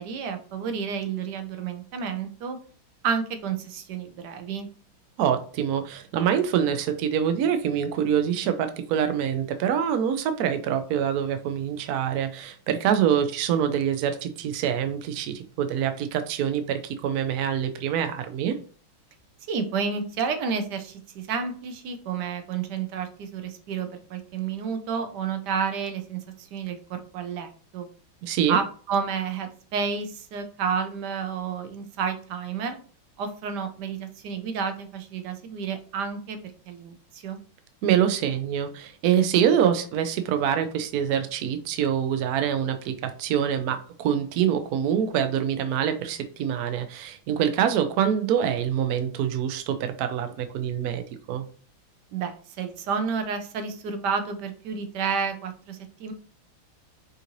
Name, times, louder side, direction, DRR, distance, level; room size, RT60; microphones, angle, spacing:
voice 1, 0.0-2.6 3.0-4.7 19.5-27.9 28.5-32.8 33.2-37.4 52.1-56.1, right 6 dB, 65° right, 7 dB, 1.1 m, -30 dB
voice 2, 5.2-18.6 28.2-28.6 37.8-51.4, right 9 dB, 85° right, 8 dB, 0.8 m, -25 dB
5.4 x 2.6 x 3.0 m, 0.41 s
omnidirectional pair, 2.2 m